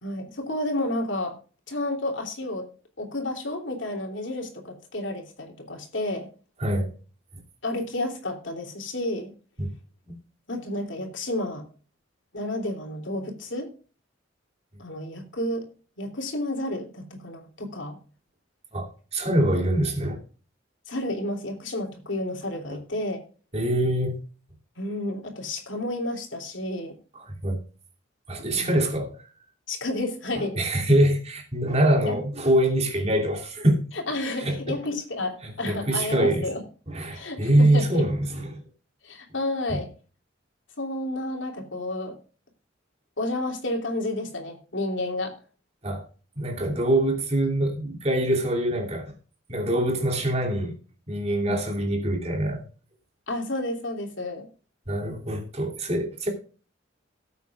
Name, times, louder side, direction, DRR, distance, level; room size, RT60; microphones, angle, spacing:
voice 1, 0.0-1.3 1.7-2.7 3.0-6.3 7.6-9.3 10.5-11.6 12.3-13.7 14.8-15.6 16.0-18.0 20.9-23.2 24.8-26.9 28.5-29.0 29.7-30.6 32.1-32.2 33.9-36.6 37.1-38.0 39.0-39.9 40.8-42.1 43.2-45.3 51.5-51.8 53.3-54.5, left 1 dB, 80° left, 3.1 m, -31 dB
voice 2, 6.6-6.9 9.6-9.7 10.1-10.2 18.7-20.2 22.7-22.8 23.5-24.2 27.2-27.6 28.3-29.2 30.3-33.9 34.4-34.6 35.4-36.5 36.9-38.6 39.7-39.8 45.8-46.0 46.4-49.1 49.5-50.7 51.1-52.6 54.9-56.3, right 1 dB, 35° right, 2.8 m, -24 dB
18.0 x 8.3 x 2.4 m
head